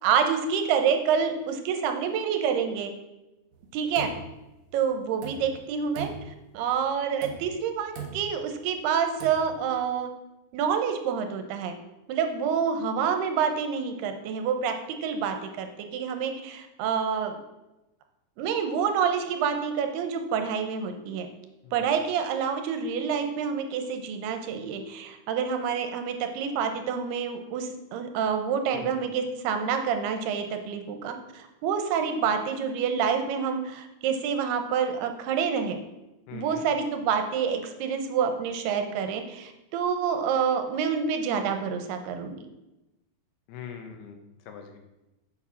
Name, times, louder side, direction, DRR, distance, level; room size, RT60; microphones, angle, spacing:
voice 1, 0.0-2.9 3.7-4.1 4.7-6.1 6.5-10.1 10.5-11.7 12.1-17.4 18.4-21.3 21.7-35.8 36.3-42.4, right 7 dB, 85° right, 7 dB, 2.9 m, -27 dB
sound 1, 3.5-4.7 5.1-5.7 5.9-6.6 7.1-7.7 7.9-8.5 9.1-9.6, right 6 dB, 65° right, 1.6 m, -40 dB
voice 2, 36.3-36.7 43.5-44.2 44.5-44.8, left 7 dB, 85° left, 5 dB, 3.2 m, -42 dB
7.2 x 7.2 x 5.7 m, 0.98 s
omnidirectional pair, 4.6 m